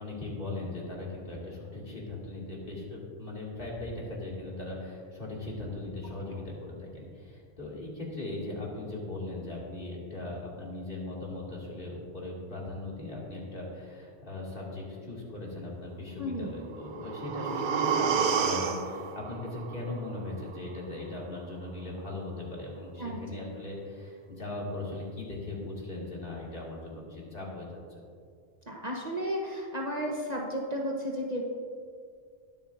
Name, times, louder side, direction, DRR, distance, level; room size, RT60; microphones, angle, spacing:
voice 1, 0.0-28.0, left 2 dB, 50° left, -4 dB, 2.5 m, -39 dB
voice 2, 16.2-16.7 23.0-23.2 28.7-31.4, equal, 40° right, -2 dB, 1.1 m, -33 dB
sound 1, 16.7-20.7 21.1-21.2, right 6 dB, 55° right, 0.6 m, -31 dB
20.5 x 7.0 x 2.6 m, 2.2 s
omnidirectional pair, 1.2 m